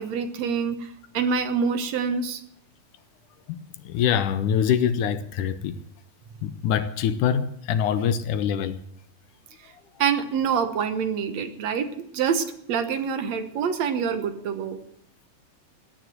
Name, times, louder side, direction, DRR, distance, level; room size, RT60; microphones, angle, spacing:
voice 1, 0.0-2.4 10.0-14.8, right 6 dB, 60° right, 2.1 m, -26 dB
voice 2, 3.5-5.8 6.4-8.8, left 8 dB, 75° left, 2.2 m, -24 dB
16.0 x 9.8 x 7.8 m
omnidirectional pair, 3.9 m